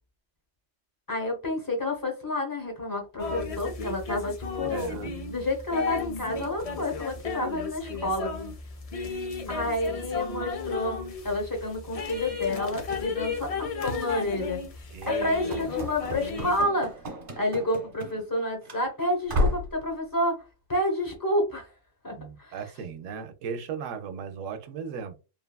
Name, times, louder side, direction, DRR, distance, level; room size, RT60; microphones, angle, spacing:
voice 1, 1.1-8.3 9.5-14.6 15.0-16.9 17.4-20.4 20.7-21.7 22.0-22.6, left 1 dB, 20° left, 0.8 m, -29 dB
sound 1, 3.2-16.6, left 4 dB, 65° left, 0.3 m, -34 dB
voice 2, 4.6-5.1 14.9-15.6 22.2-25.2, right 6 dB, 85° right, 0.9 m, -37 dB
Run / Slam, 15.5-18.4 18.7-18.8 19.3-19.8, left 1 dB, 45° right, 1.0 m, -31 dB
3.0 x 2.3 x 2.2 m
omnidirectional pair, 1.3 m